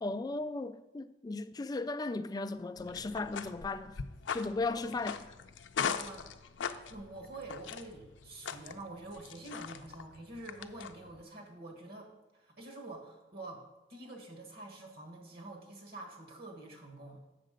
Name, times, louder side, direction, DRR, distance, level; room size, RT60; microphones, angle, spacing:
voice 1, 0.0-3.9 4.3-5.2, left 3 dB, 20° left, 0.3 m, -36 dB
sound 1, 2.8-11.2, left 6 dB, 85° left, 0.5 m, -41 dB
voice 2, 6.0-6.3 6.7-13.6 13.9-17.2, right 2 dB, 55° right, 1.6 m, -47 dB
7.4 x 6.5 x 5.1 m
head